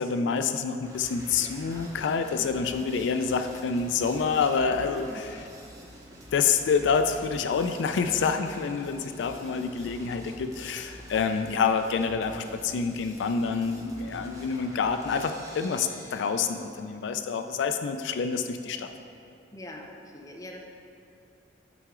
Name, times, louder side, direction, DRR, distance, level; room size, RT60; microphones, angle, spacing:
voice 1, 0.0-5.3 6.3-18.9, left 5 dB, 80° left, 8 dB, 0.3 m, -27 dB
sound 1, 0.8-16.8, equal, 20° right, 0.8 m, -47 dB
voice 2, 1.3-2.5 2.8-2.9 4.7-5.2 19.5-20.6, left 1 dB, 20° left, 1 dB, 0.5 m, -45 dB
8.4 x 4.7 x 3.7 m, 2.7 s
head